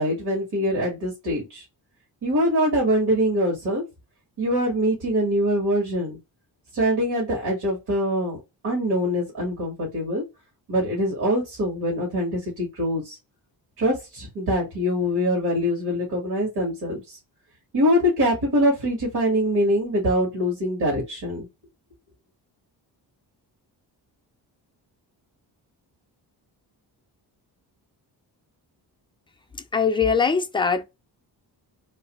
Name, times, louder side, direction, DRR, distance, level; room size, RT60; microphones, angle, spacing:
voice 1, 0.0-1.6 2.2-3.8 4.4-6.2 6.7-8.4 8.6-10.2 10.7-13.2 13.8-17.2 17.7-21.5, equal, 65° right, 1.8 m, -23 dB
voice 2, 29.7-30.8, left 5 dB, 15° left, 0.3 m, -21 dB
3.1 x 3.1 x 3.0 m
wide cardioid pair, 145°, 42 cm